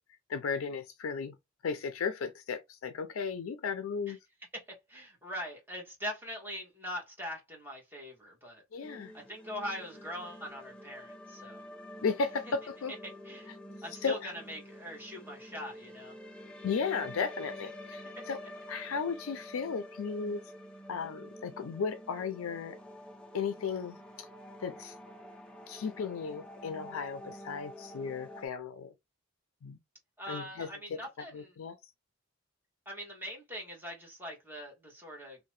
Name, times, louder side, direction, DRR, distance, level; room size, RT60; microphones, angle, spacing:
voice 1, 0.3-1.4 1.6-4.2 8.7-9.1 12.0-12.9 14.0-14.3 16.6-18.4 18.7-20.5 20.9-22.8 23.3-24.3 24.6-24.9 25.7-28.9 29.6-29.8 30.3-31.0 31.3-31.8, left 5 dB, 80° left, 0.4 m, -35 dB
voice 2, 4.5-8.6 9.1-11.6 13.2-13.5 13.8-16.1 30.2-31.5 32.9-35.5, equal, 10° right, 1.1 m, -42 dB
sound 1, 8.8-28.5, equal, 5° left, 0.3 m, -48 dB
2.7 x 2.1 x 3.1 m
head